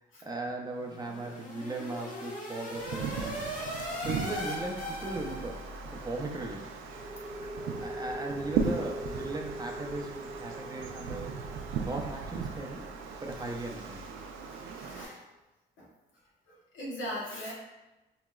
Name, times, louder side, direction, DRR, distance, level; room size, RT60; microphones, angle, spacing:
voice 1, 0.2-3.4 4.0-5.6 5.9-6.7 7.6-11.3 11.9-12.9 13.2-14.1, right 2 dB, 20° right, 0 dB, 0.6 m, -38 dB
sound 1, 0.8-5.8, left 1 dB, 40° left, 1.2 m, -39 dB
Wind, 2.7-15.1, right 6 dB, 90° right, 0.4 m, -37 dB
sound 2, 6.8-14.3, equal, 40° right, 0.9 m, -42 dB
voice 2, 14.4-15.2 15.8-15.9 16.5-17.5, equal, 85° left, -4 dB, 1.2 m, -40 dB
4.7 x 3.0 x 2.3 m, 1.1 s
cardioid pair, 90°, 20 cm